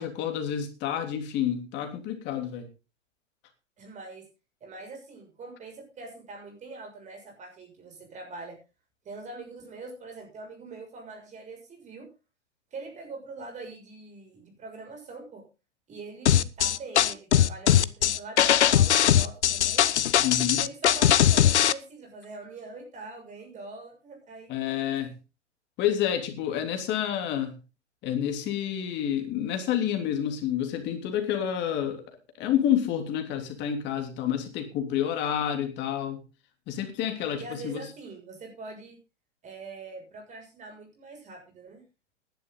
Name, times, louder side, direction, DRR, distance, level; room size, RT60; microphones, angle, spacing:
voice 1, 0.0-2.7 20.2-20.6 24.5-25.1 25.8-27.6 28.0-32.0 32.4-36.2 36.7-37.9, left 10 dB, 30° left, 3.3 m, -29 dB
voice 2, 3.8-4.3 4.6-8.6 9.0-12.1 12.7-15.4 15.9-19.9 20.5-24.6 37.4-39.0 39.4-41.8, right 3 dB, 20° right, 6.6 m, -43 dB
sound 1, 16.3-21.7, left 11 dB, 70° left, 0.9 m, -20 dB
16.0 x 11.5 x 3.9 m
hypercardioid pair, 120°, 36 cm